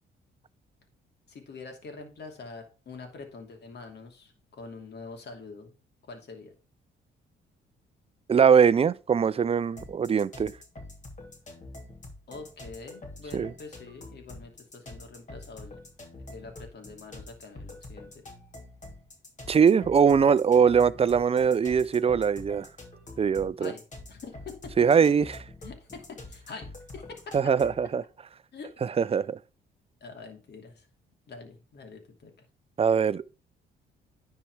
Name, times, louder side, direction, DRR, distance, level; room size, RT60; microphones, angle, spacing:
voice 1, 1.3-5.7 6.1-6.5 12.3-15.8 16.1-18.2 23.6-23.8 24.1-24.7 25.6-27.4 28.5-28.7 29.1-29.2 30.0-30.9 31.3-32.3, left 4 dB, 55° left, 2.7 m, -45 dB
voice 2, 8.3-10.5 13.3-13.5 19.5-22.7 23.2-23.7 24.8-25.3 27.3-28.0 29.0-29.4 32.8-33.2, right 6 dB, 30° right, 0.4 m, -21 dB
sound 1, 9.8-27.9, left 2 dB, 40° left, 3.0 m, -46 dB
10.0 x 4.6 x 4.8 m
cardioid pair, 90°, 20 cm